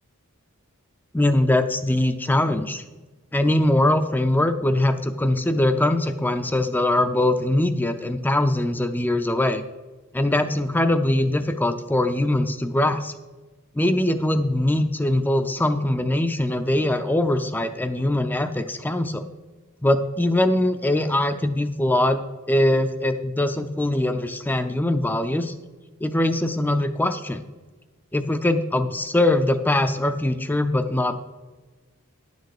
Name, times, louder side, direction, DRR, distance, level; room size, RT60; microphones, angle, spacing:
voice 1, 1.1-2.8 3.3-9.6 10.1-13.1 13.7-19.2 19.8-22.2 22.5-25.5 26.0-27.4 28.1-31.2, left 1 dB, 10° left, 9 dB, 0.4 m, -22 dB
11.0 x 6.7 x 4.8 m, 1.2 s
head